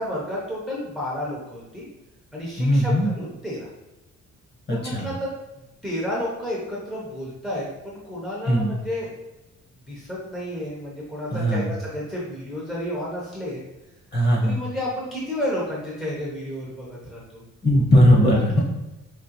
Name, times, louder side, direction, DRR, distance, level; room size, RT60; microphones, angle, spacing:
voice 1, 0.0-1.9 2.3-3.7 4.7-5.3 5.8-9.1 9.9-13.6 14.4-17.4 18.5-18.6, left 1 dB, ahead, -5 dB, 0.8 m, -31 dB
voice 2, 2.6-3.1 4.7-5.1 8.5-8.7 11.3-11.7 14.1-14.6 17.6-18.6, equal, 35° left, -3 dB, 1.1 m, -18 dB
5.0 x 3.0 x 3.0 m, 1.0 s
cardioid pair, 170°, 31 cm